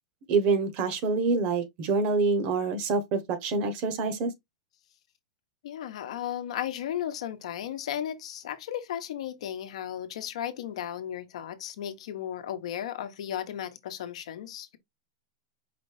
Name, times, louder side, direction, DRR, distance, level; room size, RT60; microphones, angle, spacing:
voice 1, 0.3-4.3, right 4 dB, 40° right, 0.9 m, -26 dB
voice 2, 5.6-14.8, left 10 dB, 75° left, 0.8 m, -35 dB
4.9 x 2.6 x 3.2 m
supercardioid pair, 150°, 3 cm